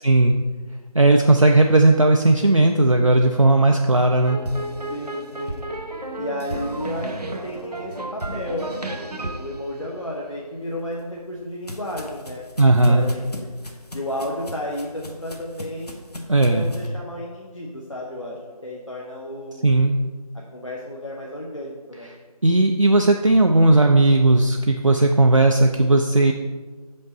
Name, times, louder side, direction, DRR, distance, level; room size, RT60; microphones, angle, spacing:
voice 1, 0.0-0.3 0.9-4.4 12.6-13.1 16.3-16.7 19.6-19.9 22.4-26.3, right 2 dB, 55° right, 3 dB, 0.4 m, -16 dB
sound 1, 4.3-10.6, right 1 dB, 85° right, 0.8 m, -32 dB
voice 2, 4.9-5.7 6.2-12.4 12.9-13.5 13.9-16.1 16.5-19.9 20.5-22.1, left 1 dB, 50° left, -3 dB, 0.9 m, -32 dB
sound 2, 10.8-16.9, left 1 dB, 80° left, 1.0 m, -39 dB
6.6 x 5.3 x 4.0 m, 1.4 s
figure-of-eight pair, 175°, 20 cm